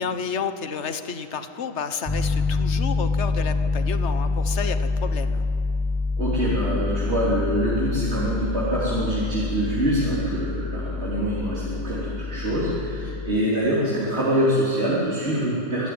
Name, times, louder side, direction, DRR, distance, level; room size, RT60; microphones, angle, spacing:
voice 1, 0.0-5.5 13.0-13.2, left 6 dB, 45° left, 10 dB, 1.2 m, -31 dB
Piano, 2.1-13.4, left 3 dB, 15° left, 0.8 m, -26 dB
voice 2, 6.2-15.9, right 1 dB, 40° right, -6 dB, 3.6 m, -25 dB
25.0 x 12.0 x 9.5 m, 2.6 s
omnidirectional pair, 1.8 m